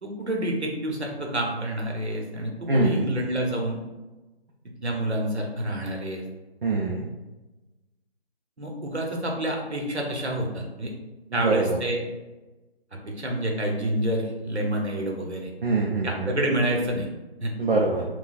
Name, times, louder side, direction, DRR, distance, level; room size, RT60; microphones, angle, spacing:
voice 1, 0.0-3.8 4.8-6.2 8.6-10.9 11.3-12.0 13.1-15.5 16.0-17.1 17.4-17.5, right 1 dB, 85° right, 1 dB, 0.9 m, -28 dB
voice 2, 2.7-3.1 6.6-7.1 11.3-11.8 15.6-16.4 17.6-18.1, right 2 dB, 55° right, -2 dB, 0.5 m, -24 dB
4.0 x 2.3 x 2.4 m, 1.1 s
figure-of-eight pair, 165°, 32 cm